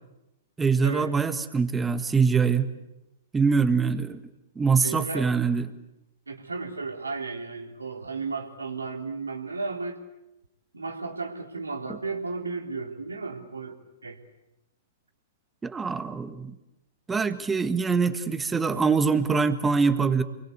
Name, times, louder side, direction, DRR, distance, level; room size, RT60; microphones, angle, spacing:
voice 1, 0.6-2.7 3.3-4.2 4.5-5.7 15.6-16.5 17.1-20.2, right 5 dB, 10° right, 11 dB, 1.7 m, -24 dB
voice 2, 4.8-5.3 6.3-10.0 10.7-14.2, right 4 dB, 85° right, 4 dB, 3.4 m, -34 dB
28.5 x 22.5 x 8.2 m, 0.91 s
figure-of-eight pair, 110°, 0 cm